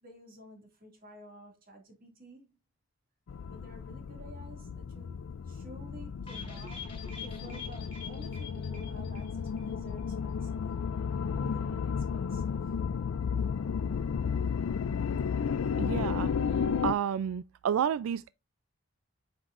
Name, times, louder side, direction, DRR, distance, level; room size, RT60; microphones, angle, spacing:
voice 1, 0.0-2.6 3.4-10.5 11.3-12.8, equal, 40° right, 2.2 m, -52 dB
sound 1, 3.3-16.9, left 6 dB, 75° left, 0.4 m, -33 dB
sound 2, 6.3-9.7 10.0-10.1 10.4-10.5, left 5 dB, 25° left, 2.0 m, -45 dB
voice 2, 15.8-18.3, right 8 dB, 80° right, 0.3 m, -31 dB
8.0 x 5.9 x 2.5 m
head